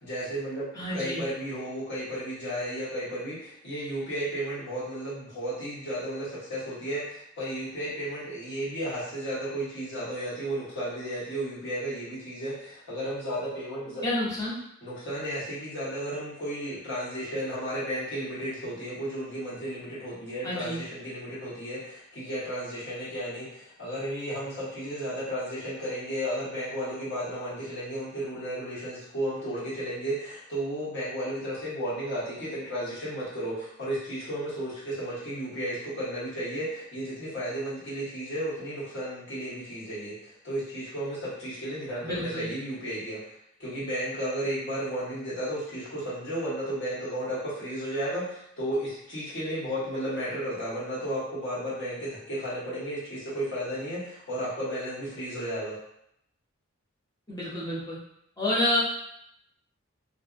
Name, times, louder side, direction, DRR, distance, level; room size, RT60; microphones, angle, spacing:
voice 1, 0.0-14.0 14.8-43.2 43.6-55.8, right 1 dB, 65° left, -9 dB, 1.2 m, -33 dB
voice 2, 0.7-1.2 14.0-14.6 20.4-20.8 42.0-42.5 57.3-58.0 58.4-58.8, left 1 dB, 20° left, -8 dB, 0.7 m, -29 dB
2.5 x 2.1 x 2.4 m, 0.76 s
head